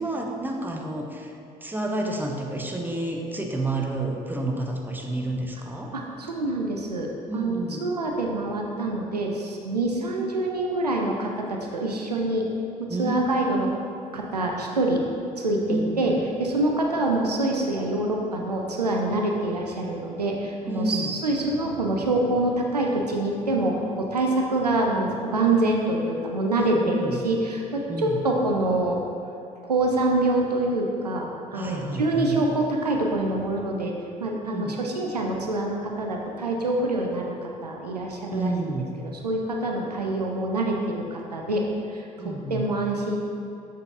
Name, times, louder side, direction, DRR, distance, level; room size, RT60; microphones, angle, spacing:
voice 1, 0.0-1.3 1.6-5.9 7.3-7.9 12.9-13.7 15.7-16.2 20.7-21.1 26.5-27.2 27.9-28.2 31.5-32.4 34.4-34.8 38.3-38.9 42.2-42.7, right 2 dB, 10° right, 1 dB, 0.8 m, -30 dB
voice 2, 5.9-7.1 7.3-12.5 12.8-13.7 14.1-15.0 15.4-16.1 16.4-29.0 29.6-33.9 34.2-38.5 39.0-43.2, right 2 dB, 90° right, 0 dB, 0.5 m, -26 dB
6.7 x 6.0 x 2.6 m, 2.7 s
figure-of-eight pair, 50°, 20 cm